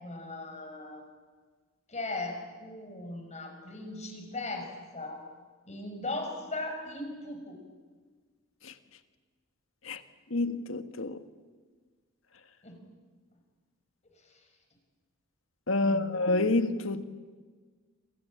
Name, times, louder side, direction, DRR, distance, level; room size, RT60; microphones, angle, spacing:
voice 1, 0.0-1.0 1.9-5.2 5.7-7.6 12.6-12.8 14.2-14.4 15.8-16.1, left 2 dB, 35° left, 5.7 m, -38 dB
voice 2, 10.3-11.2 15.7-17.0, left 2 dB, 75° left, 1.6 m, -28 dB
28.0 x 27.0 x 7.5 m
head